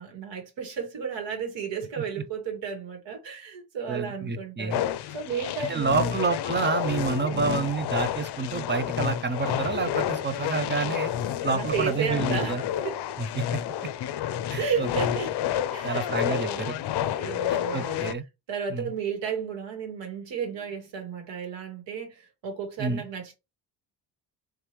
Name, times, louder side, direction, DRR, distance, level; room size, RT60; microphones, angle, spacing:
voice 1, 0.0-4.9 5.1-6.1 7.3-7.6 11.5-13.0 14.6-15.3 15.7-16.7 17.1-18.0 18.5-23.3, right 6 dB, 70° right, 2.1 m, -33 dB
voice 2, 3.9-4.8 5.6-11.1 11.4-12.6 13.2-13.6 14.5-14.9 15.8-16.7 17.5-18.2 18.7-18.9 22.8-23.0, right 4 dB, 25° right, 0.6 m, -28 dB
sound 1, 4.7-18.1, left 11 dB, 60° left, 0.6 m, -30 dB
3.4 x 3.3 x 3.0 m
cardioid pair, 105°, 45 cm